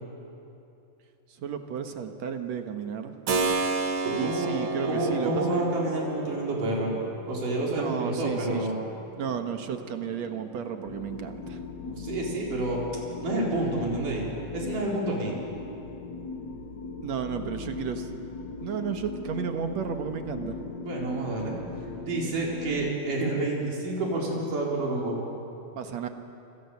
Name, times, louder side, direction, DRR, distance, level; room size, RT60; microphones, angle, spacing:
voice 1, 1.4-3.1 4.1-5.6 7.8-8.7 9.2-11.6 17.0-18.1 18.6-20.6 25.8-26.1, right 8 dB, 60° right, 6 dB, 2.5 m, -33 dB
Keyboard (musical), 3.3-11.9, right 2 dB, 45° right, 2.0 m, -33 dB
voice 2, 4.0-4.5 4.9-6.9 7.3-8.8 11.8-12.8 13.2-14.3 14.5-15.3 20.8-21.5 22.0-25.2, right 2 dB, 80° right, -3 dB, 6.0 m, -29 dB
sound 1, 10.8-22.9, left 4 dB, 60° left, 1.1 m, -39 dB
28.5 x 27.0 x 7.2 m, 2.8 s
omnidirectional pair, 3.6 m